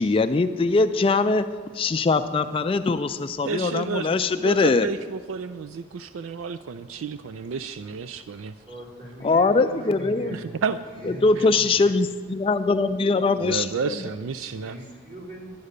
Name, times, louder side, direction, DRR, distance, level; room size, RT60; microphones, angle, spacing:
voice 1, 0.0-1.4 1.7-4.9 9.2-10.4 11.2-13.7, left 3 dB, 25° left, 9 dB, 0.3 m, -22 dB
voice 2, 3.4-8.5 10.3-10.8 11.4-11.5 13.4-14.8, right 5 dB, 85° right, 13 dB, 0.4 m, -31 dB
voice 3, 8.7-10.5 10.9-11.9 14.5-15.5, right 1 dB, 40° right, -3 dB, 3.2 m, -40 dB
11.5 x 9.5 x 6.6 m, 1.5 s
head